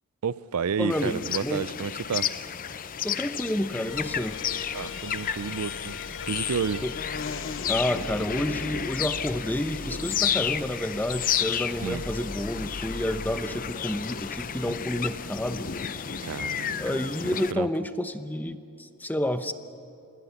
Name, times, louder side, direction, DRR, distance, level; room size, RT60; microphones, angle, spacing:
voice 1, 0.2-2.3 4.7-6.0 6.3-6.9 11.8-12.0 16.2-16.8 17.5-17.7, right 6 dB, 70° right, 18 dB, 0.5 m, -30 dB
voice 2, 0.8-1.6 3.0-4.4 6.8-6.9 7.7-15.7 16.8-19.5, left 1 dB, 10° left, 9 dB, 0.8 m, -29 dB
sound 1, 0.9-17.5, left 8 dB, 40° left, 0.6 m, -32 dB
sound 2, 3.9-16.0, left 4 dB, 60° left, 0.9 m, -41 dB
27.0 x 21.0 x 7.1 m, 2.7 s
head